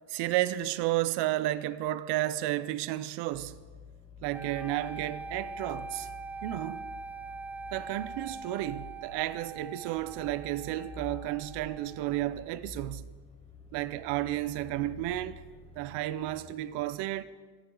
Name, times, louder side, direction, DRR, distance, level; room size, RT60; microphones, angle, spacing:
voice 1, 0.1-3.6 4.2-6.1 6.4-6.8 7.7-13.1 13.7-15.4 15.8-17.2, right 15 dB, 70° right, 0.8 m, -32 dB
sound 1, 3.3-16.5, left 4 dB, 15° left, 1.5 m, -49 dB
sound 2, 4.3-12.4, right 4 dB, 5° right, 0.4 m, -43 dB
24.0 x 15.5 x 3.9 m
cardioid pair, 140°, 43 cm